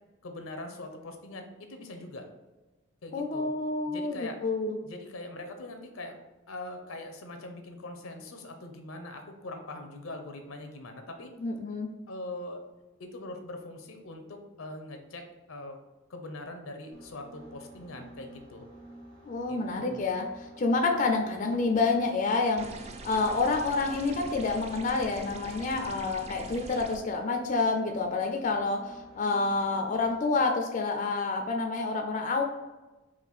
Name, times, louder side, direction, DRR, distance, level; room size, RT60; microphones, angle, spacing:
voice 1, 0.2-2.3 3.0-3.5 3.9-4.4 4.8-6.2 6.5-11.3 12.1-12.6 13.0-15.8 16.1-18.7 19.4-20.0, left 2 dB, 85° left, 5 dB, 0.7 m, -42 dB
voice 2, 3.1-4.2 4.4-4.8 11.4-11.9 19.3-20.3 20.6-22.7 23.0-32.4, left 3 dB, 40° left, 3 dB, 0.4 m, -28 dB
sound 1, 16.9-30.4, right 1 dB, 90° right, 1.1 m, -51 dB
sound 2, 22.6-27.0, right 3 dB, 30° right, 0.4 m, -44 dB
4.2 x 2.5 x 4.1 m, 1.1 s
head